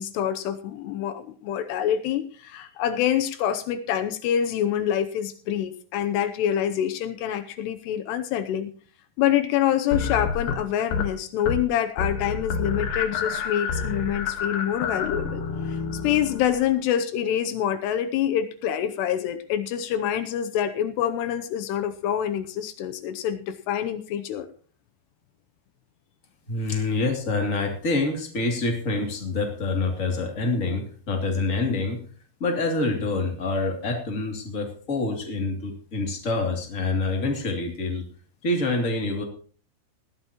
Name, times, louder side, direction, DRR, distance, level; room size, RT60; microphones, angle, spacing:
voice 1, 0.0-8.7 9.2-15.4 15.7-15.8 16.0-24.5, left 10 dB, 80° left, 9 dB, 2.9 m, -26 dB
sound 1, 9.9-11.1 11.4-11.7 12.0-16.7, left 5 dB, 65° left, 3.0 m, -29 dB
voice 2, 26.5-32.0 32.4-38.0 38.4-39.2, left 3 dB, 20° left, 2 dB, 2.5 m, -26 dB
19.0 x 13.0 x 3.0 m, 0.43 s
omnidirectional pair, 4.8 m